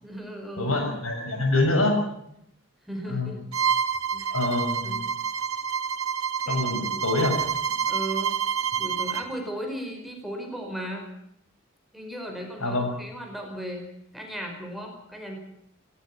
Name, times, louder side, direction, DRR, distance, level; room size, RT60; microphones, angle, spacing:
voice 1, 0.0-0.7 2.8-3.4 4.1-4.4 4.8-5.0 6.4-6.6 7.9-8.3 8.8-11.0 11.9-13.8 14.1-15.4, right 1 dB, ahead, 2 dB, 5.1 m, -36 dB
voice 2, 0.6-2.0 3.0-3.3 4.3-5.0 6.5-7.3 12.6-12.9, left 2 dB, 75° left, 4 dB, 6.8 m, -25 dB
Bowed string instrument, 3.5-9.3, right 7 dB, 75° right, 1.8 m, -28 dB
18.5 x 17.0 x 9.9 m, 0.76 s
head